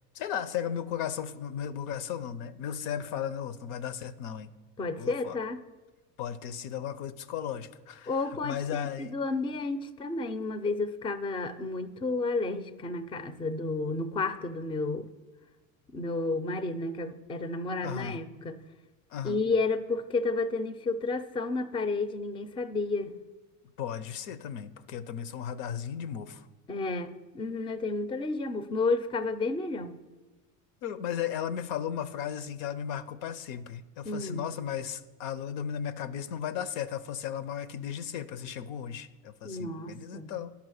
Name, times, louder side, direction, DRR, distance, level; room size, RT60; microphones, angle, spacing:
voice 1, 0.1-4.5 5.0-5.4 6.2-8.2 8.4-9.1 17.8-18.2 19.1-19.4 23.8-26.4 30.8-40.5, left 9 dB, 80° left, 14 dB, 0.7 m, -35 dB
voice 2, 4.8-5.6 8.1-15.1 15.9-18.5 19.2-23.1 26.7-30.0 34.0-34.4 39.4-40.3, left 3 dB, 15° left, 12 dB, 0.4 m, -31 dB
10.0 x 5.7 x 6.3 m, 1.2 s
supercardioid pair, 110°, 39 cm